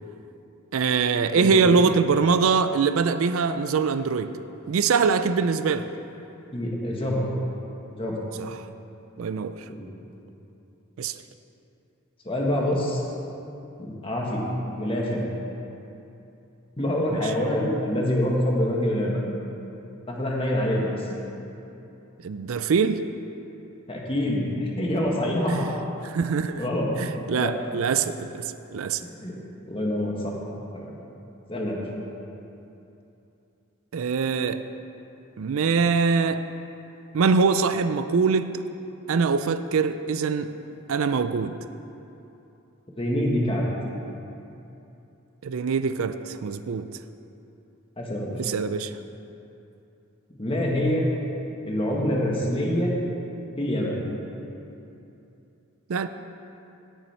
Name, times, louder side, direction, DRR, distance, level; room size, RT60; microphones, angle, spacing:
voice 1, 0.7-4.3 4.7-5.9 8.4-8.5 9.2-9.5 11.0-11.1 17.1-17.2 22.2-23.1 25.5-25.7 26.1-26.7 27.0-28.5 28.7-29.0 33.9-34.6 35.4-36.4 37.1-38.6 39.1-40.5 40.9-41.5 45.4-46.8 48.4-48.9 55.9-56.1, right 5 dB, 70° right, 11 dB, 0.4 m, -23 dB
voice 2, 6.5-7.3 7.9-8.2 9.7-9.9 12.2-13.0 13.8-14.4 14.8-15.2 16.8-19.2 20.1-21.1 23.9-25.7 26.6-26.9 27.4-27.5 29.2-29.3 29.7-30.3 30.7-30.9 31.5-31.8 42.9-43.7 48.0-48.4 50.4-51.0 51.6-52.9 53.6-54.1, left 1 dB, 25° left, -2 dB, 1.6 m, -26 dB
17.0 x 7.0 x 4.4 m, 2.9 s
head